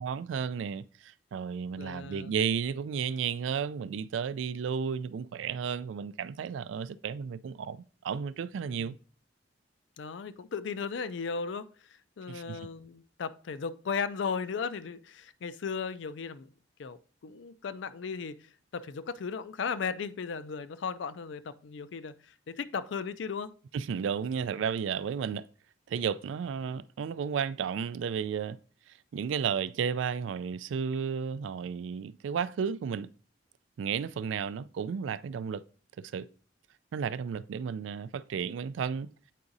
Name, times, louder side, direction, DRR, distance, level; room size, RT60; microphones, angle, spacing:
voice 1, 0.0-8.9 12.3-12.6 23.7-25.4 25.9-28.6 29.1-33.1 33.8-35.6 36.0-36.3 36.9-39.1, right 7 dB, 80° right, 0.3 m, -33 dB
voice 2, 1.8-2.3 8.8-9.0 10.0-11.7 12.2-16.5 16.8-22.1 22.5-23.5, left 5 dB, 70° left, 0.4 m, -36 dB
8.3 x 4.8 x 2.6 m
head